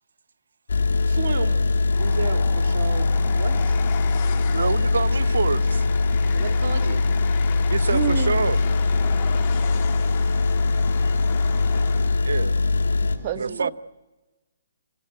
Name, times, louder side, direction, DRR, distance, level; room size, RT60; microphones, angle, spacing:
sound 1, 0.7-13.2, left 3 dB, 85° left, 3.3 m, -21 dB
voice 1, 1.1-1.6 2.0-3.1 3.4-3.8 6.3-7.0 13.4-13.7, right 5 dB, 60° right, 2.1 m, -32 dB
Train, 1.9-12.4, left 10 dB, 30° left, 1.9 m, -38 dB
voice 2, 4.5-5.8 7.7-8.6 12.3-12.6 13.4-13.7, right 5 dB, 85° right, 0.7 m, -26 dB
voice 3, 7.9-8.5 13.2-13.7, right 10 dB, 30° right, 1.1 m, -27 dB
26.5 x 16.0 x 9.3 m
hypercardioid pair, 160°, 0 cm